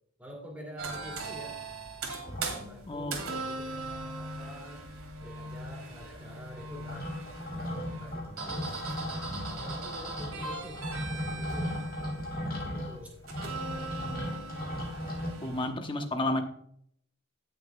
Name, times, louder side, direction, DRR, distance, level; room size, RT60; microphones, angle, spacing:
voice 1, 0.2-1.6 2.4-4.9 5.2-7.1 7.5-11.9 12.4-13.2 15.1-15.8, equal, 5° right, 0 dB, 2.4 m, -47 dB
sound 1, 0.8-15.7, right 3 dB, 75° right, 2.1 m, -40 dB
sound 2, 2.2-3.1 3.5-3.6 3.8-4.5 4.7-15.3, left 1 dB, 45° left, 2.1 m, -37 dB
voice 2, 2.9-3.2 15.4-16.4, left 1 dB, 25° left, 6 dB, 0.9 m, -31 dB
16.5 x 6.7 x 2.2 m, 0.68 s
head